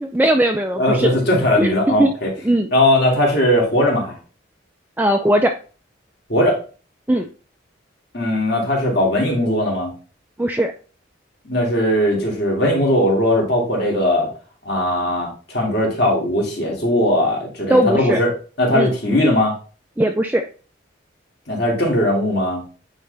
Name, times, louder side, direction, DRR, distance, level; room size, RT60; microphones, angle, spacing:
voice 1, 0.0-1.1 1.6-1.7 2.0-2.1 2.5-2.7 5.0-5.5 7.1-7.3 10.4-10.7 17.7-18.2 18.7-18.9 20.0-20.4, right 1 dB, 10° right, 4 dB, 0.4 m, -18 dB
voice 2, 0.8-2.3 2.7-4.1 6.3-6.6 8.1-9.9 11.4-14.3 14.6-19.6 21.5-22.6, left 1 dB, 55° left, -1 dB, 2.6 m, -19 dB
9.4 x 4.1 x 3.4 m, 0.37 s
head